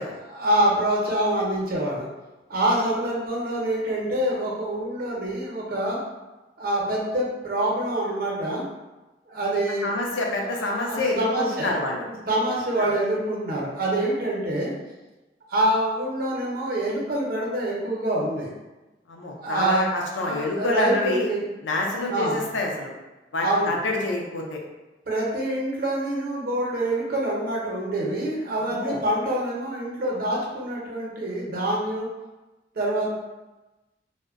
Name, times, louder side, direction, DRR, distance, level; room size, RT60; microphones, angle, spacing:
voice 1, 0.0-2.1 2.5-6.1 6.6-8.6 9.3-9.9 10.6-11.7 12.0-14.7 15.5-18.5 19.4-21.4 21.9-22.5 23.4-23.8 25.1-32.1 32.7-33.1, right 1 dB, 55° right, -3 dB, 0.6 m, -26 dB
voice 2, 9.8-12.0 12.8-12.9 19.1-21.3 21.6-22.9 23.3-24.6 28.6-29.0, left 2 dB, 90° left, 0 dB, 0.5 m, -27 dB
2.6 x 2.1 x 2.4 m, 1.1 s
head